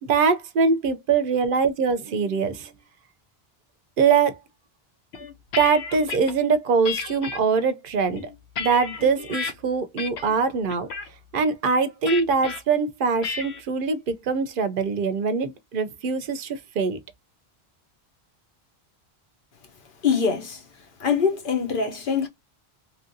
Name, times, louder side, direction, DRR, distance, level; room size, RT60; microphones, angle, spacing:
voice 1, 0.0-2.7 4.0-4.4 5.6-8.3 8.6-10.9 11.3-17.0, right 5 dB, 65° right, 0.7 m, -23 dB
sound 1, 5.1-6.3 6.8-7.4 8.0-9.5 10.0-10.4 10.7-11.1 12.1-12.6 13.2-13.6, left 5 dB, 80° left, 0.9 m, -32 dB
voice 2, 20.0-20.6 21.0-22.3, left 6 dB, 55° left, 1.0 m, -23 dB
3.0 x 2.6 x 2.6 m
omnidirectional pair, 1.0 m